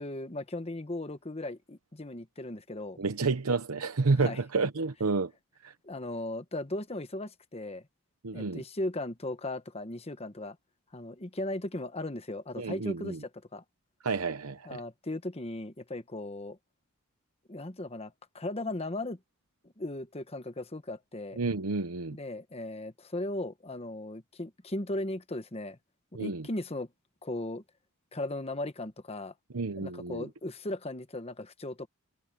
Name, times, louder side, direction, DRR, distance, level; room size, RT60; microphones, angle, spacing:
voice 1, 0.0-3.0 4.2-4.4 5.8-7.9 8.3-10.6 10.9-13.6 14.6-16.6 17.5-19.2 19.8-21.4 22.1-25.8 26.2-26.9 27.2-27.6 28.1-29.3 29.8-31.9, left 1 dB, 30° left, 1.1 m, -37 dB
voice 2, 3.0-5.3 5.6-5.7 8.2-8.6 12.6-13.2 14.0-14.8 21.4-22.2 26.1-26.5 29.5-30.3, right 4 dB, 80° right, 0.9 m, -30 dB
head